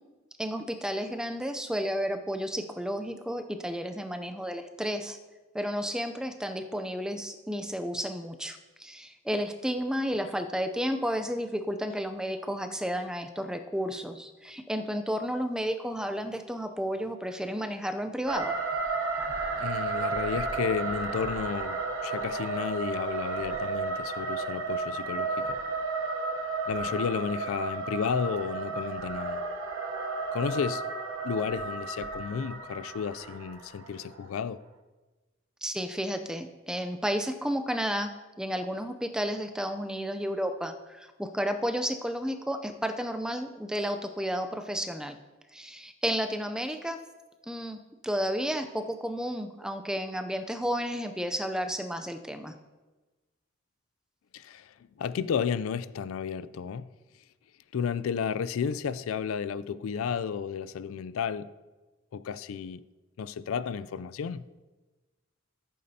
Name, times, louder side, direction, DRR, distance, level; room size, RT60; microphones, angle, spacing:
voice 1, 0.4-5.2 5.5-18.5 35.6-38.1 38.4-45.2 45.5-47.0 47.4-52.5, equal, 5° right, 0.4 m, -32 dB
sound 1, 18.3-34.3, right 3 dB, 75° right, 0.9 m, -33 dB
voice 2, 19.6-25.6 26.7-29.4 30.3-30.8 31.2-34.6 54.3-56.9 57.7-61.5 62.1-62.8 63.2-64.5, left 6 dB, 80° left, 0.4 m, -32 dB
14.5 x 8.5 x 2.8 m
head